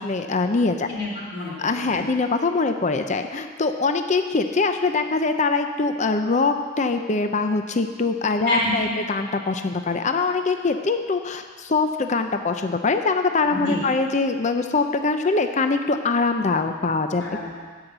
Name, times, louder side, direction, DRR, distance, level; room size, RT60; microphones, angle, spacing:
voice 1, 0.0-0.9 1.6-17.2, left 3 dB, 35° left, 7 dB, 0.6 m, -23 dB
voice 2, 0.9-2.0 8.5-9.0 13.5-13.8 17.2-17.5, left 1 dB, 55° left, -3 dB, 3.5 m, -28 dB
12.5 x 5.6 x 8.0 m, 1.6 s
head